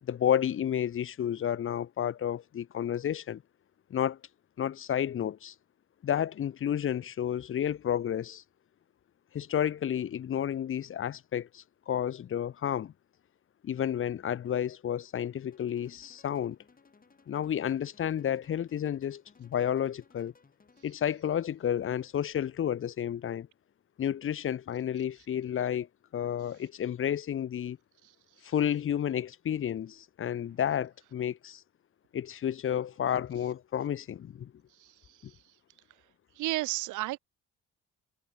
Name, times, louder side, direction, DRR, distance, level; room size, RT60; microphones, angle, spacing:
voice 1, 0.0-3.4 3.9-4.2 4.6-5.5 6.0-8.4 9.3-12.9 13.6-16.6 17.3-20.3 20.8-23.5 24.0-25.9 26.1-27.8 28.4-31.6 32.1-34.5 35.2-35.3, left 9 dB, 45° left, 0.7 m, -31 dB
sound 1, 15.5-21.2, left 4 dB, 30° left, 5.9 m, -63 dB
voice 2, 34.8-35.4 36.4-37.2, right 18 dB, 80° right, 0.6 m, -33 dB
cardioid pair, 90°, 30 cm